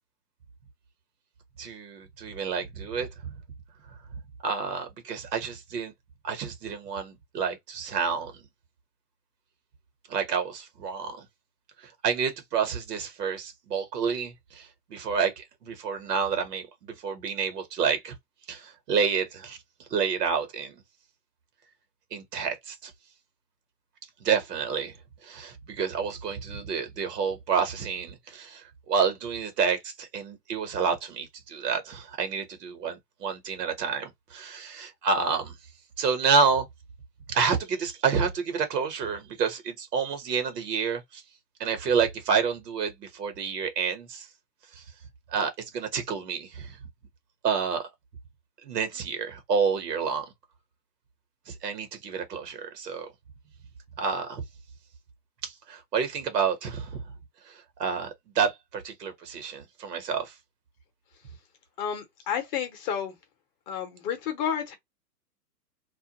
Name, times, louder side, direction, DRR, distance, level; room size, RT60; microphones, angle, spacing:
voice 1, 1.6-3.3 4.4-5.9 6.2-8.4 10.1-11.2 11.8-18.1 18.5-19.6 19.9-20.8 22.1-22.9 24.2-25.0 25.2-35.5 36.0-36.7 37.3-41.2 41.6-44.3 44.7-44.8 45.3-46.8 47.4-47.8 48.6-50.3 51.5-53.1 54.0-54.4 55.4-57.0 57.5-60.3, right 6 dB, 70° right, 1.1 m, -29 dB
voice 2, 61.8-63.2 63.7-64.8, left 8 dB, 30° left, 0.7 m, -31 dB
2.4 x 2.1 x 2.8 m
hypercardioid pair, 130°, 49 cm